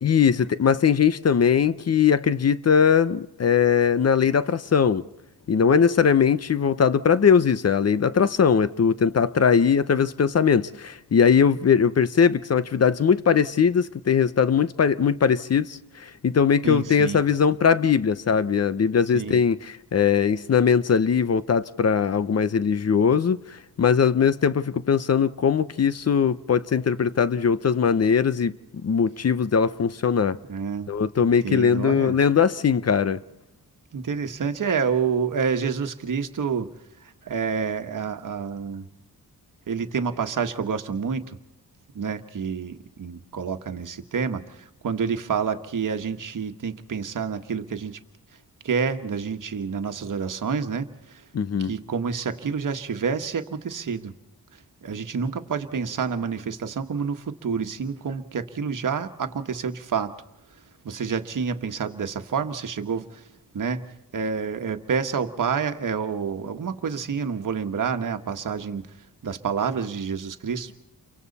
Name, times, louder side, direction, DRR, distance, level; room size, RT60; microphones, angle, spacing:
voice 1, 0.0-5.0 5.5-28.6 28.8-30.4 30.9-33.2 51.3-51.7, left 7 dB, 45° left, 0.8 m, -20 dB
voice 2, 16.6-17.2 19.1-19.4 30.5-30.9 31.4-32.1 33.9-36.7 37.3-38.9 39.7-41.3 41.9-48.0 48.6-51.2 51.6-54.1 54.8-60.1 60.8-63.2 63.5-63.9 64.1-68.8 69.2-70.8, right 6 dB, 60° right, 1.6 m, -28 dB
29.5 x 24.0 x 4.2 m
cardioid pair, 90°, 36 cm